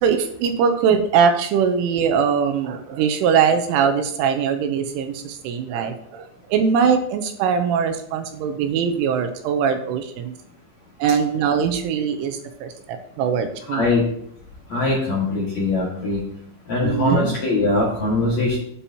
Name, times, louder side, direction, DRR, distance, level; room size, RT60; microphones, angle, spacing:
voice 1, 0.0-10.3 11.0-13.9 16.8-17.3, right 7 dB, 80° right, 7 dB, 3.1 m, -21 dB
voice 2, 13.7-14.0 14.7-16.2 16.7-18.6, left 2 dB, 50° left, -4 dB, 2.2 m, -21 dB
12.5 x 10.0 x 2.9 m, 0.69 s
omnidirectional pair, 6.0 m